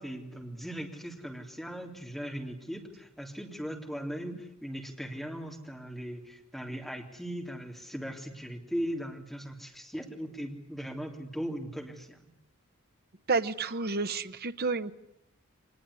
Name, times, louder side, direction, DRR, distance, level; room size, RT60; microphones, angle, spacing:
voice 1, 0.0-12.3, equal, ahead, 1 dB, 3.4 m, -38 dB
voice 2, 13.3-14.9, right 4 dB, 50° right, 10 dB, 1.0 m, -30 dB
24.5 x 20.0 x 9.9 m, 0.80 s
head